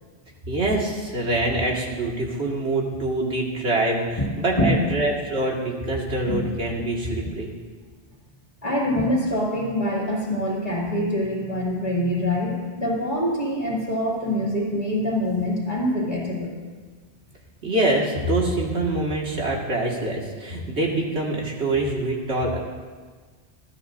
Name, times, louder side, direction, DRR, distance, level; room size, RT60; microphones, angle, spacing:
voice 1, 0.5-7.5 17.6-22.6, right 2 dB, 70° right, -2 dB, 2.3 m, -25 dB
voice 2, 8.6-16.6, left 1 dB, 35° left, -5 dB, 2.5 m, -25 dB
21.0 x 13.0 x 2.7 m, 1.5 s
omnidirectional pair, 1.2 m